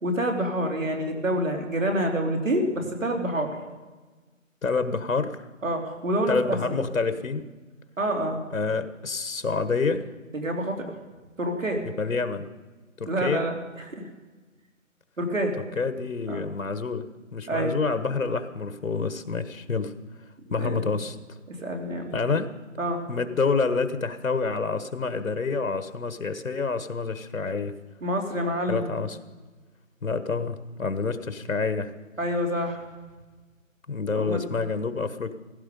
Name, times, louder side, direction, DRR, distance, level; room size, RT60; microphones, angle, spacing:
voice 1, 0.0-3.5 5.6-6.8 8.0-8.4 10.3-10.9 11.4-11.8 13.1-13.8 15.2-15.6 16.3-16.5 17.5-17.8 20.6-20.8 21.6-22.1 22.8-23.0 28.0-28.9 32.2-32.8 34.1-34.4, right 1 dB, 70° right, 2 dB, 3.5 m, -27 dB
voice 2, 4.6-5.5 6.3-7.5 8.5-10.1 12.0-12.5 13.0-13.5 15.6-19.9 20.5-21.4 22.1-22.5 23.1-27.8 28.7-29.2 30.0-31.9 33.9-35.3, left 4 dB, 75° left, 10 dB, 1.3 m, -28 dB
16.0 x 16.0 x 5.2 m, 1.3 s
figure-of-eight pair, 175°, 40 cm